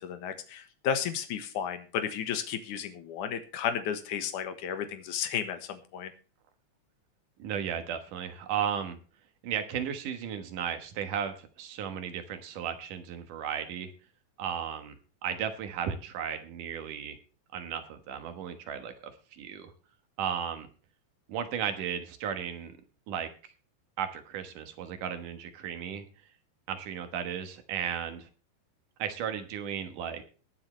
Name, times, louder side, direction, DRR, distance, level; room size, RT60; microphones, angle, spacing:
voice 1, 0.0-6.1, left 8 dB, 75° left, 8 dB, 2.8 m, -33 dB
voice 2, 7.4-9.0 9.4-13.9 14.4-15.0 15.2-17.2 17.5-19.7 20.2-20.7 21.3-22.7 23.1-23.3 24.0-26.0 26.7-28.3 29.0-30.2, right 8 dB, 85° right, 7 dB, 3.0 m, -35 dB
21.0 x 7.7 x 3.3 m, 0.37 s
omnidirectional pair, 3.6 m